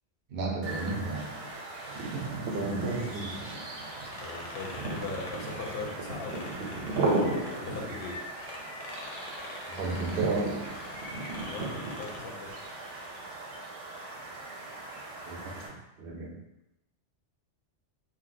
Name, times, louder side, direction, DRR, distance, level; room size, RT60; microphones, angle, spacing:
voice 1, 0.3-1.4 2.1-3.5 9.8-10.6 15.3-15.4 16.0-16.4, right 3 dB, 60° right, 0 dB, 0.7 m, -33 dB
sound 1, 0.6-15.7, right 2 dB, 90° right, 1.0 m, -36 dB
sound 2, 3.6-8.1 8.4-12.5, left 2 dB, 85° left, 1.0 m, -45 dB
voice 2, 4.2-7.0 7.6-8.3 11.5-12.5, left 3 dB, 60° left, -1 dB, 0.8 m, -40 dB
2.7 x 2.0 x 4.0 m, 0.89 s
omnidirectional pair, 1.2 m